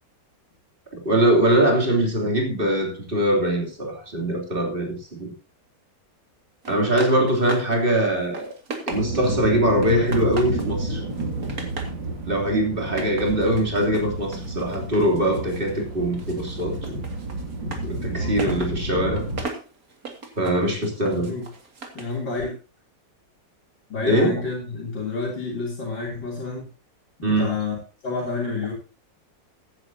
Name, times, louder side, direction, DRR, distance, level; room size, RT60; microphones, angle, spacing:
voice 1, 1.0-5.3 6.7-8.5 8.9-11.0 12.3-17.0 17.8-19.3 20.4-21.3 24.1-24.3 27.2-27.5, right 1 dB, 30° right, 3.3 m, -22 dB
sound 1, 6.6-7.8 8.1-9.4 9.8-10.7 11.1-12.0 12.8-15.8 16.1-22.2, right 3 dB, 50° right, 2.5 m, -37 dB
sound 2, 8.9-19.4, right 1 dB, 80° right, 3.4 m, -30 dB
voice 2, 18.1-18.4 21.0-21.5 21.9-22.5 23.9-26.7 27.2-27.8 28.0-28.7, left 4 dB, 80° left, 3.9 m, -29 dB
15.5 x 10.0 x 2.8 m
omnidirectional pair, 2.0 m